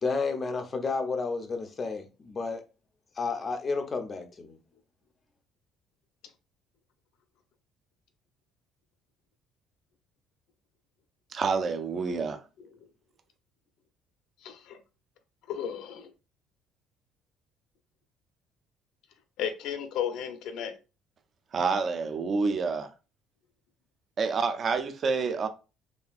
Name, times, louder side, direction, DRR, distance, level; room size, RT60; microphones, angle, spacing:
voice 1, 0.0-2.6 3.2-4.6, left 4 dB, 20° left, 0.5 m, -31 dB
voice 2, 11.3-12.4 21.5-22.9 24.2-25.5, right 4 dB, 30° right, 0.4 m, -28 dB
voice 3, 14.4-14.8 15.5-16.1 19.4-20.7, left 8 dB, 60° left, 0.6 m, -34 dB
4.2 x 3.2 x 2.4 m
cardioid pair, 175°, 0 cm